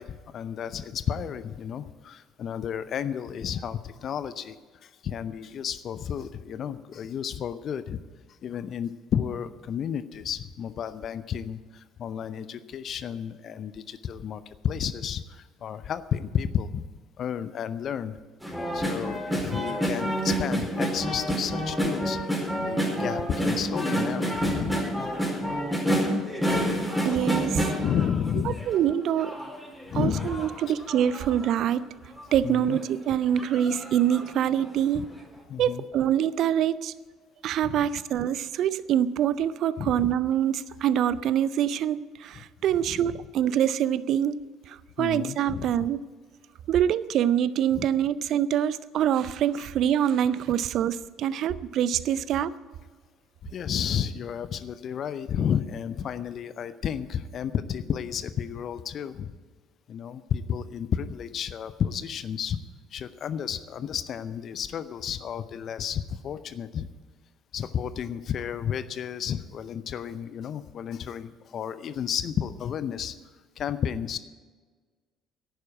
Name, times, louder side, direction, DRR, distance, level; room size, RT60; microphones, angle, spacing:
voice 1, 0.0-4.6 4.8-8.0 8.4-16.9 17.2-18.2 18.7-24.8 27.8-28.6 29.9-30.4 32.4-32.8 35.0-35.1 35.5-35.8 37.6-37.9 39.8-40.1 42.9-43.0 45.0-45.7 47.7-47.9 53.4-59.4 59.9-62.6 62.9-66.9 67.5-73.1 73.6-74.2, left 8 dB, 50° left, 13 dB, 0.6 m, -32 dB
sound 1, 18.4-28.8 29.2-31.6 32.2-32.3 32.5-32.8 33.4-34.3 34.7-34.8, equal, ahead, 4.5 m, -28 dB
voice 2, 27.0-27.7 28.5-29.4 29.9-31.9 32.3-35.1 35.6-36.9 37.4-46.0 46.7-52.5, right 10 dB, 55° right, 18 dB, 0.5 m, -25 dB
11.0 x 9.3 x 8.7 m, 1.4 s
hypercardioid pair, 55°, 0 cm